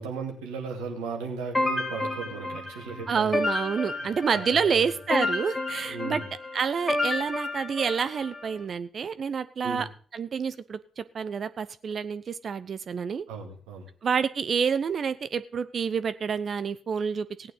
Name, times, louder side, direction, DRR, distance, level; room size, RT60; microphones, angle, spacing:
voice 1, 0.0-3.4 3.9-4.1 4.3-4.8 5.9-6.3 9.6-9.9 13.3-13.9, right 5 dB, 70° right, 2 dB, 2.2 m, -36 dB
sound 1, 1.5-8.5, left 2 dB, 15° left, 2.6 m, -31 dB
voice 2, 3.1-6.2 6.5-9.9 10.1-13.2 14.0-17.5, right 6 dB, 45° right, 13 dB, 0.6 m, -28 dB
17.0 x 9.0 x 4.0 m, 0.43 s
figure-of-eight pair, 40°, 0 cm